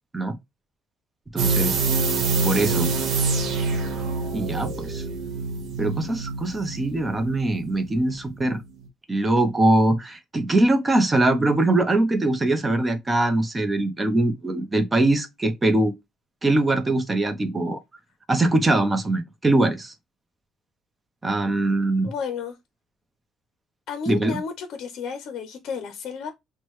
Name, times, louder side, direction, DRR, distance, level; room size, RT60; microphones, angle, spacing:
voice 1, 1.3-1.8 2.4-2.9 4.3-5.0 5.8-8.6 9.1-15.9 16.4-17.8 18.3-19.9 21.2-22.1 24.1-24.4, right 2 dB, 20° right, 0.8 m, -22 dB
sound 1, 1.4-8.2 8.5-8.6, right 4 dB, 65° right, 1.0 m, -26 dB
voice 2, 22.0-22.6 23.9-26.3, left 6 dB, 65° left, 0.6 m, -32 dB
6.0 x 2.2 x 3.1 m
cardioid pair, 110°, 0 cm